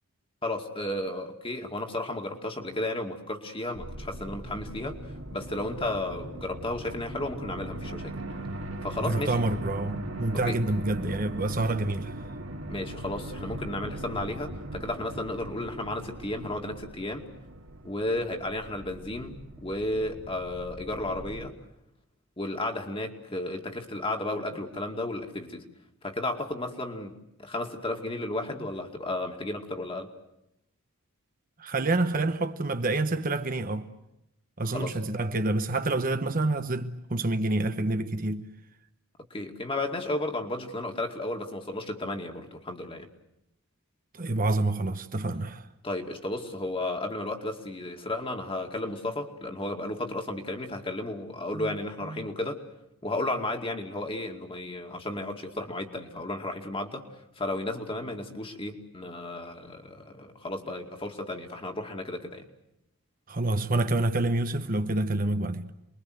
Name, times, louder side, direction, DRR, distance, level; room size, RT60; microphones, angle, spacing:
voice 1, 0.4-5.0 5.3-8.2 8.8-9.4 10.3-10.6 12.7-17.2 17.8-21.5 22.4-25.7 26.0-30.1 34.7-35.0 39.3-43.1 45.8-52.6 53.0-57.1 57.4-62.4, left 1 dB, 25° left, 2.4 m, -33 dB
sound 1, 3.7-21.5, right 1 dB, 60° right, 2.2 m, -40 dB
voice 2, 9.0-12.2 31.6-33.9 34.6-38.5 44.1-45.7 51.5-51.7 52.1-52.3 63.3-65.7, right 2 dB, 40° right, 1.0 m, -28 dB
28.0 x 22.0 x 8.0 m
head